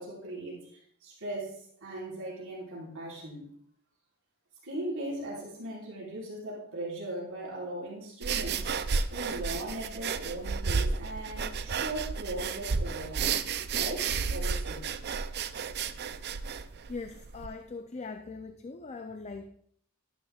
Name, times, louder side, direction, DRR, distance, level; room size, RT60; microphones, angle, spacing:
voice 1, 0.0-3.5 4.6-8.7 9.1-13.4 13.7-14.8, right 1 dB, 65° right, 4.8 m, -38 dB
sound 1, 8.2-17.5, right 5 dB, 50° right, 0.5 m, -32 dB
voice 2, 16.9-19.5, left 4 dB, 30° left, 0.5 m, -41 dB
12.0 x 12.0 x 2.4 m
head